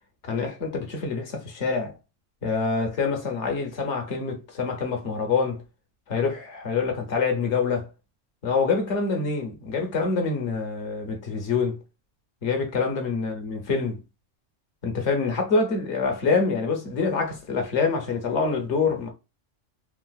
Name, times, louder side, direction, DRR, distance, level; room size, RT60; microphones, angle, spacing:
voice 1, 0.3-1.9 2.4-5.6 6.1-7.9 8.4-11.8 12.4-14.0 14.8-19.1, left 4 dB, 65° left, 1.2 m, -26 dB
3.6 x 2.4 x 2.3 m
omnidirectional pair, 1.3 m